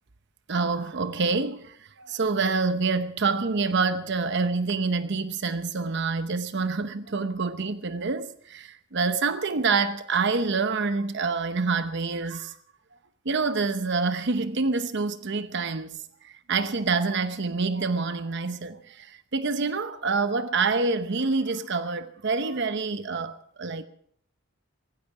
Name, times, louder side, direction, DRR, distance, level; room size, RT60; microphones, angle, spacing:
voice 1, 0.5-12.6 13.2-16.0 16.2-23.8, right 4 dB, 60° right, 0.9 m, -27 dB
17.5 x 16.0 x 4.8 m
head